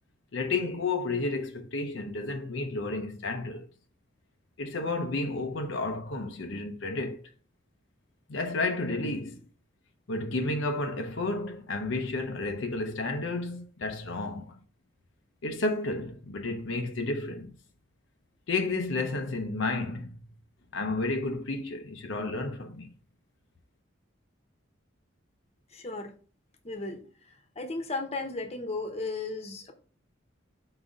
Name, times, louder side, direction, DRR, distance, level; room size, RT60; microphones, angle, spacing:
voice 1, 0.3-3.7 4.6-7.2 8.3-9.4 10.1-14.5 15.4-17.5 18.5-20.1 20.7-22.9, left 3 dB, 70° left, 0.7 m, -31 dB
voice 2, 25.7-26.1 26.6-27.0 27.6-29.7, left 3 dB, 30° left, 1.0 m, -34 dB
4.8 x 4.0 x 4.9 m
head